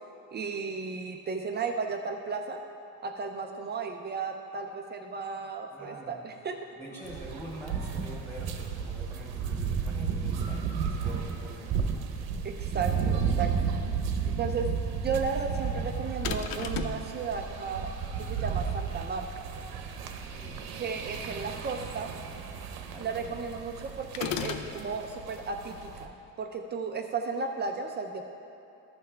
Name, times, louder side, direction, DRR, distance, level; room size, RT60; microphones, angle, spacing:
voice 1, 0.3-2.6 3.0-6.6 6.9-7.0 12.4-13.8 14.3-17.9 18.2-19.4 20.7-22.1 23.0-28.2, right 5 dB, 30° right, 4 dB, 0.3 m, -34 dB
voice 2, 5.7-6.2 6.7-11.8 20.4-20.7 22.9-23.5, right 1 dB, 5° left, -5 dB, 1.9 m, -45 dB
sound 1, 7.0-26.0, right 6 dB, 65° right, 0.8 m, -33 dB
sound 2, 16.2-17.0 24.1-24.7, left 7 dB, 60° left, 0.6 m, -33 dB
14.0 x 5.7 x 3.3 m, 2.8 s
cardioid pair, 150°, 39 cm